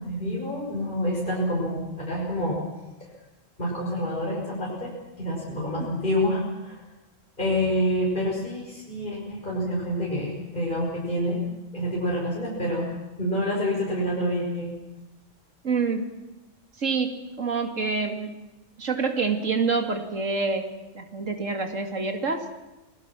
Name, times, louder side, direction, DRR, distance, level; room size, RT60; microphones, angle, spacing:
voice 1, 0.0-2.6 3.0-3.1 3.6-6.8 7.4-11.4 11.7-12.9 13.2-14.7, equal, 40° left, -4 dB, 6.3 m, -27 dB
voice 2, 15.6-16.1 16.8-18.4 18.8-20.7 20.9-22.5, right 4 dB, 90° right, 5 dB, 2.7 m, -27 dB
29.5 x 20.0 x 6.1 m, 1.1 s
omnidirectional pair, 1.3 m